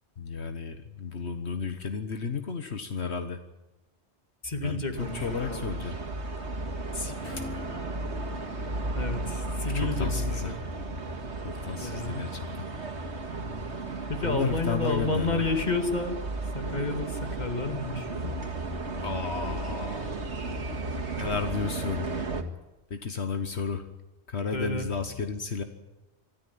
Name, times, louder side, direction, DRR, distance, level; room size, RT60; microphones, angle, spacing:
voice 1, 0.2-3.4 4.6-6.0 6.9-7.5 9.7-10.6 11.4-12.4 14.2-15.4 19.0-20.2 21.2-22.1 22.9-23.9 24.3-25.6, left 5 dB, 70° left, 8 dB, 1.6 m, -33 dB
voice 2, 4.4-5.6 8.9-10.6 11.8-12.2 14.1-16.2 16.5-18.3 24.5-24.9, left 3 dB, 40° left, 6 dB, 2.4 m, -31 dB
sound 1, 5.0-22.4, right 2 dB, 80° right, 2.3 m, -34 dB
Acoustic guitar / Strum, 7.2-13.4 13.8-13.9, left 3 dB, 10° left, 3.6 m, -48 dB
25.0 x 13.5 x 9.5 m, 1.1 s
omnidirectional pair, 1.1 m